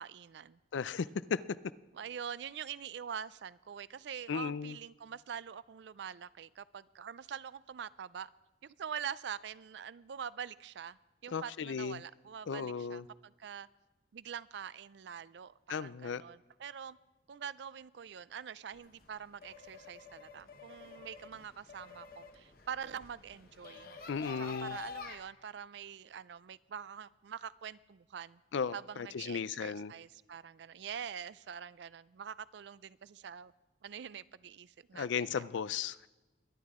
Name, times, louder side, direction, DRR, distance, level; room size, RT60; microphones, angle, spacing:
voice 1, 0.0-0.6 1.9-8.3 8.6-13.7 14.1-17.0 17.3-24.0 24.4-28.4 28.7-33.5 33.8-35.5, right 8 dB, 75° right, 0.4 m, -45 dB
voice 2, 0.7-1.4 4.3-4.8 11.3-12.0 12.5-13.0 15.7-16.2 24.1-24.8 28.5-29.9 34.9-36.1, left 6 dB, 90° left, 0.4 m, -35 dB
sound 1, 18.7-25.2, left 5 dB, 50° left, 1.1 m, -49 dB
22.0 x 10.5 x 3.6 m
head